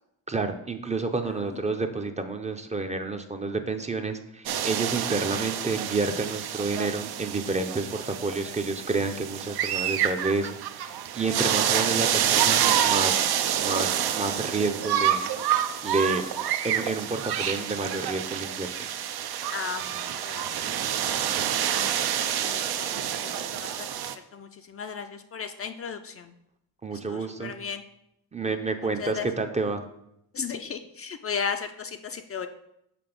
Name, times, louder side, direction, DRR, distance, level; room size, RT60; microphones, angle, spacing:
voice 1, 0.3-15.2 15.8-16.3 16.6-18.7 26.8-27.5 28.3-29.8, right 3 dB, 20° right, 6 dB, 0.5 m, -29 dB
sound 1, 4.5-24.2, right 10 dB, 80° right, 0.6 m, -28 dB
voice 2, 17.2-17.7 19.5-20.8 21.2-22.1 22.4-26.3 26.9-27.8 29.0-29.3 30.3-32.5, left 6 dB, 40° left, 7 dB, 0.4 m, -36 dB
5.9 x 4.1 x 5.1 m, 0.80 s
cardioid pair, 115°, 37 cm